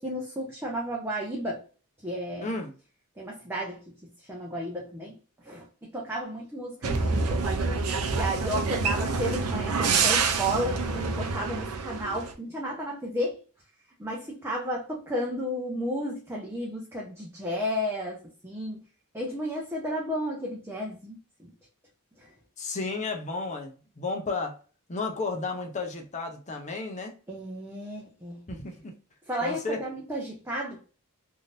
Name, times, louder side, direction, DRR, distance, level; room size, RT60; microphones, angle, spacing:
voice 1, 0.0-1.6 2.0-2.5 3.2-3.9 4.3-5.2 5.4-7.5 8.1-13.4 14.0-18.8 19.1-21.5 22.2-22.3 27.3-28.4 29.3-30.8, equal, 10° right, 0.7 m, -33 dB
voice 2, 2.4-2.7 22.6-24.6 24.9-27.1 28.5-28.9 29.4-29.8, left 3 dB, 30° left, 0.6 m, -33 dB
sound 1, 6.8-12.3, right 4 dB, 75° right, 0.6 m, -27 dB
3.5 x 2.7 x 2.5 m
head